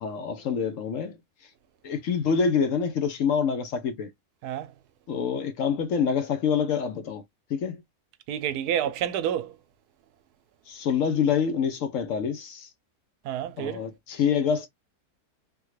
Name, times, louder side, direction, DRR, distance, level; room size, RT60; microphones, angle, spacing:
voice 1, 0.0-1.2 1.8-4.1 5.1-7.2 7.5-7.8 10.7-12.7 13.6-14.7, left 6 dB, 65° left, 0.9 m, -26 dB
voice 2, 8.3-9.5 13.2-13.8, right 10 dB, 90° right, 1.1 m, -29 dB
3.4 x 2.2 x 3.0 m
omnidirectional pair, 1.6 m